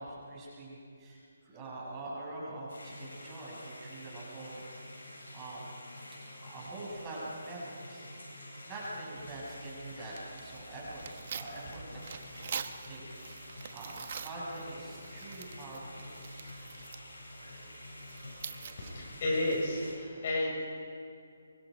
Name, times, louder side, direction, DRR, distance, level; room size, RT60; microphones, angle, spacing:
voice 1, 0.0-4.6 5.3-5.7 6.2-8.1 8.4-12.2 12.6-13.1 13.4-16.0, right 2 dB, 20° right, -6 dB, 6.8 m, -44 dB
sound 1, 2.7-19.9, left 1 dB, 85° left, 7.8 m, -48 dB
Tearing, 9.2-19.9, right 7 dB, 50° right, 1.2 m, -46 dB
voice 2, 18.8-20.5, left 2 dB, 45° left, -1 dB, 6.5 m, -32 dB
24.5 x 24.0 x 5.3 m, 2.4 s
hypercardioid pair, 155°, 0 cm